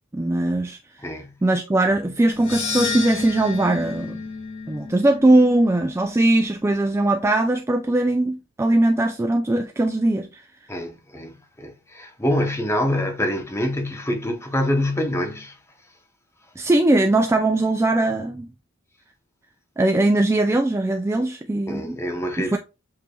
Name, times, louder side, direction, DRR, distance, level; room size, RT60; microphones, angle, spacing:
voice 1, 0.1-0.8 1.4-4.2 4.7-10.4 16.6-18.5 19.8-22.0 22.4-22.6, right 2 dB, 15° right, 0.3 m, -20 dB
voice 2, 1.0-1.3 10.7-15.6 21.7-22.6, left 1 dB, 15° left, 0.8 m, -25 dB
sound 1, 2.3-6.7, left 4 dB, 70° left, 1.7 m, -31 dB
7.4 x 3.2 x 2.3 m
head